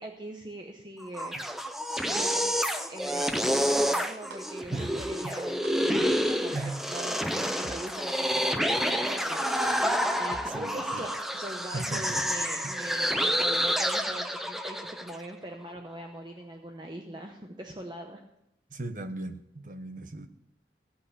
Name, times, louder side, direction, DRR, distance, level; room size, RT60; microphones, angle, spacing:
voice 1, 0.0-1.4 2.0-2.5 2.9-6.6 6.8-18.2, right 1 dB, 25° right, 2 dB, 0.9 m, -42 dB
sound 1, 1.0-15.2, equal, ahead, 0.6 m, -28 dB
sound 2, 4.3-4.4 5.0-5.1 5.6-5.7 6.3-6.4 7.0-7.1 7.6-7.7 8.3-8.4 9.0-9.1 9.6-9.7 10.3-10.4 11.0-11.1 11.6-11.7, right 3 dB, 70° right, 0.9 m, -45 dB
voice 2, 4.7-5.3 6.5-6.8 10.5-11.1 11.7-12.2 12.6-12.7 18.7-20.3, right 2 dB, 45° right, 8 dB, 1.0 m, -37 dB
16.0 x 5.6 x 8.3 m, 0.82 s
head